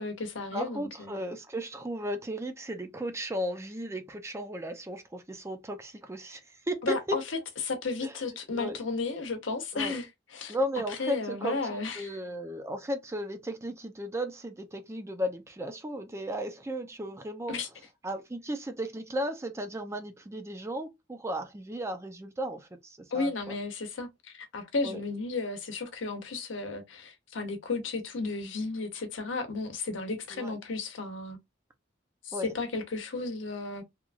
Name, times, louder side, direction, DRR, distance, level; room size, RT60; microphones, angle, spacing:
voice 1, 0.0-1.2 6.8-7.2 7.6-10.5 10.9-12.1 17.5-17.7 23.1-31.4 32.2-33.8, left 3 dB, 85° left, 0.8 m, -34 dB
voice 2, 0.5-7.2 8.0-8.1 8.5-8.8 9.7-10.0 10.5-17.5 18.0-23.6 24.8-25.0 30.3-30.6 32.3-32.5, equal, 15° right, 0.4 m, -35 dB
2.8 x 2.3 x 2.4 m
head